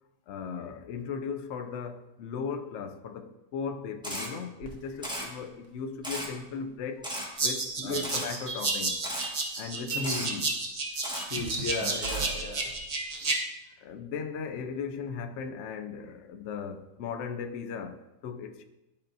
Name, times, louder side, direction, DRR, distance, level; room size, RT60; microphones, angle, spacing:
voice 1, 0.3-7.1 7.4-9.0 9.5-10.4 13.8-18.6, left 6 dB, 85° left, 0.6 m, -37 dB
Camera, 4.0-4.3 5.0-5.3 6.0-6.3 7.0-7.3 8.0-8.3 9.0-9.3 10.0-10.3 11.0-11.3 12.0-12.2, equal, 5° right, 0.9 m, -35 dB
sound 1, 4.6-7.1 7.4-10.0 10.3-13.1 13.9-14.2, right 5 dB, 85° right, 1.6 m, -44 dB
sound 2, 7.4-13.4, right 3 dB, 45° right, 0.5 m, -31 dB
voice 2, 7.8-8.2 9.9-10.2 11.2-12.7, left 2 dB, 50° left, 0.9 m, -34 dB
11.5 x 4.3 x 2.6 m
omnidirectional pair, 1.8 m